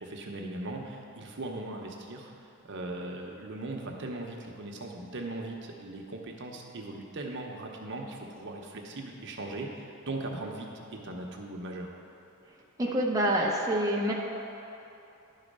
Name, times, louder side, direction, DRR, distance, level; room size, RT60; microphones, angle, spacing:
voice 1, 0.0-2.3 2.6-11.9, right 2 dB, 55° right, 1 dB, 0.8 m, -39 dB
voice 2, 12.8-14.1, right 1 dB, 15° right, -3 dB, 0.6 m, -26 dB
11.0 x 4.1 x 5.3 m, 2.9 s
head